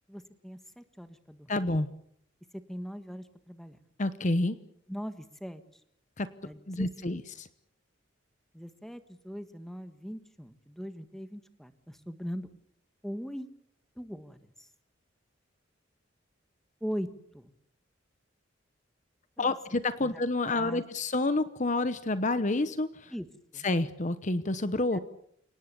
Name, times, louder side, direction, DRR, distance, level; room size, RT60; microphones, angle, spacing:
voice 1, 0.1-1.7 2.5-3.8 4.9-5.6 6.4-6.9 8.5-12.5 13.0-13.5 14.0-14.4 16.8-17.1 17.3-17.5 19.4-19.5 20.0-20.1 20.5-20.8 23.1-23.3 23.5-23.7 24.9-25.0, equal, ahead, 9 dB, 1.5 m, -40 dB
voice 2, 1.5-1.9 4.0-4.6 6.2-6.3 6.7-7.5 19.4-23.1 23.6-25.0, left 2 dB, 40° left, 13 dB, 0.9 m, -29 dB
29.5 x 18.5 x 6.9 m, 0.70 s
head